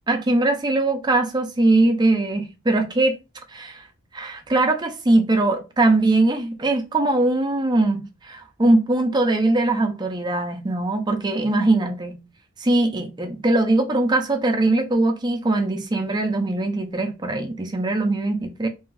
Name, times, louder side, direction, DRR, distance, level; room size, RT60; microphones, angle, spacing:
voice 1, 0.1-3.2 3.5-3.9 4.1-12.2 12.6-18.7, right 2 dB, 20° right, 0.4 m, -21 dB
2.5 x 2.3 x 3.1 m
head